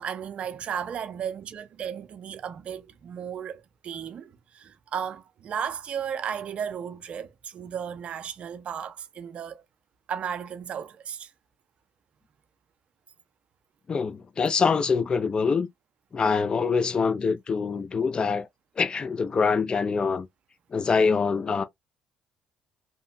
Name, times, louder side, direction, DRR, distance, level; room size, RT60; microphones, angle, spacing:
voice 1, 0.0-9.6 10.1-11.3, right 8 dB, 55° right, 0.5 m, -34 dB
voice 2, 13.9-15.7 16.1-18.5 18.8-20.3 20.7-21.6, left 5 dB, 40° left, 0.5 m, -24 dB
2.9 x 2.2 x 2.6 m
supercardioid pair, 60°, 2 cm